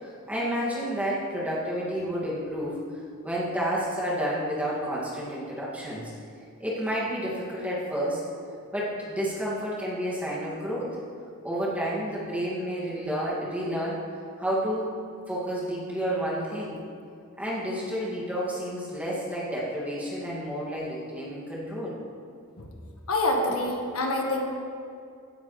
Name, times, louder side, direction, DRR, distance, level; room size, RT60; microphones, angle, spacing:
voice 1, 0.0-2.8 3.2-6.1 6.6-8.2 8.7-10.9 11.4-14.0 14.4-14.9 15.3-16.8 17.4-22.0, equal, 5° right, -7 dB, 2.2 m, -30 dB
voice 2, 23.1-24.4, left 2 dB, 80° left, 1 dB, 1.4 m, -26 dB
16.5 x 9.3 x 3.3 m, 2.5 s
head